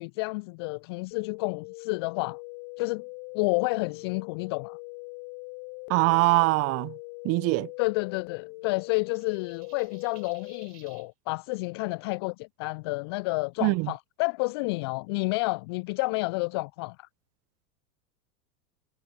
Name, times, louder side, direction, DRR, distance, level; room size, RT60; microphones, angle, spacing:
voice 1, 0.0-2.4 2.8-3.0 3.3-4.8 7.8-17.1, left 28 dB, 20° left, 0.3 m, -30 dB
sound 1, 1.1-10.7, left 39 dB, 40° left, 1.8 m, -42 dB
voice 2, 5.9-6.9 7.2-7.7 13.6-13.9, right 26 dB, 30° right, 0.7 m, -23 dB
sound 2, 9.1-11.1, right 9 dB, 65° right, 6.8 m, -57 dB
figure-of-eight pair, 90°, 50 cm